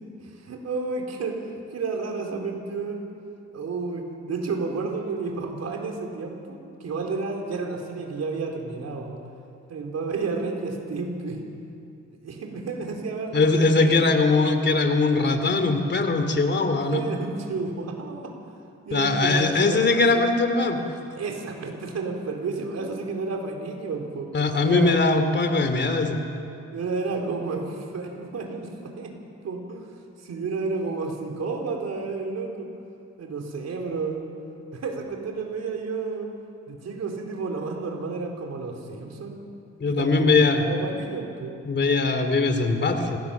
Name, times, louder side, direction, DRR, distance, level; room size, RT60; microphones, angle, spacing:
voice 1, 0.0-1.4 1.7-3.0 3.5-9.2 9.7-11.4 12.2-13.9 16.9-18.3 18.9-20.2 21.1-24.3 24.6-25.1 26.7-29.1 29.4-29.9 30.2-32.7 33.2-34.2 34.7-36.3 36.7-39.4 39.9-41.5, right 4 dB, 60° right, 2 dB, 4.3 m, -31 dB
voice 2, 13.3-17.0 18.9-20.8 24.3-26.2 39.8-40.6 41.6-43.2, left 3 dB, 35° left, 7 dB, 2.8 m, -21 dB
26.0 x 17.5 x 7.3 m, 2.5 s
cardioid pair, 90°, 30 cm